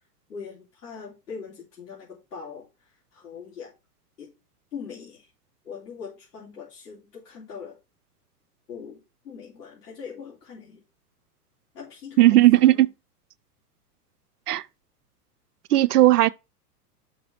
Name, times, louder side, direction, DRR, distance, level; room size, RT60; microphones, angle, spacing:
voice 1, 0.3-3.7 4.2-4.3 4.7-5.3 5.6-7.8 8.7-10.8 11.7-12.9, left 6 dB, 85° left, 3.2 m, -41 dB
voice 2, 12.2-12.9 14.5-14.6 15.7-16.3, right 15 dB, 75° right, 0.6 m, -16 dB
6.0 x 5.6 x 4.9 m
hypercardioid pair, 105°, 47 cm